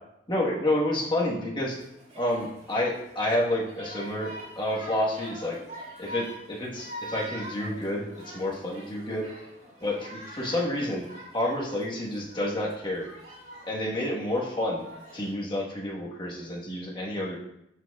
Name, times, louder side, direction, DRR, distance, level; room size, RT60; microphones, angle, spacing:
voice 1, 0.3-1.8 2.2-5.6 6.0-9.3 9.8-10.0 10.3-11.1 11.3-13.1 13.7-14.8 15.1-17.4, left 1 dB, 25° left, -3 dB, 1.3 m, -29 dB
sound 1, 1.7-15.3, right 1 dB, 40° right, 2.2 m, -45 dB
12.0 x 4.4 x 2.4 m, 0.83 s
head